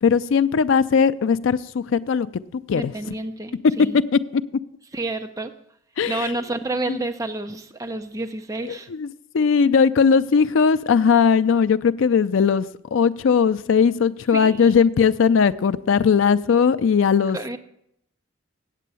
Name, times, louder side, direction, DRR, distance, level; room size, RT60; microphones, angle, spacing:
voice 1, 0.0-2.3 2.7-2.9 4.1-4.4 6.0-6.3 6.9-7.0 8.7-9.1 9.3-17.6, left 6 dB, 70° left, 0.4 m, -19 dB
voice 2, 2.7-4.0 4.9-5.5 6.1-8.9 14.3-14.7 17.3-17.6, right 2 dB, 15° right, 0.5 m, -29 dB
8.3 x 7.6 x 6.9 m
head